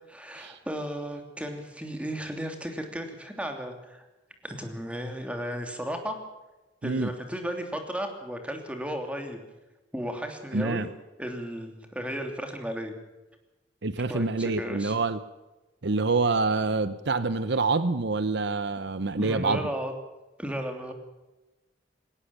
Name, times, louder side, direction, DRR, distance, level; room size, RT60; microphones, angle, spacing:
voice 1, 0.1-4.1 4.4-6.2 6.8-9.4 9.9-10.9 11.2-12.9 14.1-14.9 19.2-19.9 20.4-20.9, equal, 5° right, 5 dB, 3.0 m, -34 dB
voice 2, 10.5-10.9 13.8-15.2 15.8-19.7, right 3 dB, 65° right, 14 dB, 0.9 m, -26 dB
20.0 x 18.5 x 7.1 m, 1.0 s
head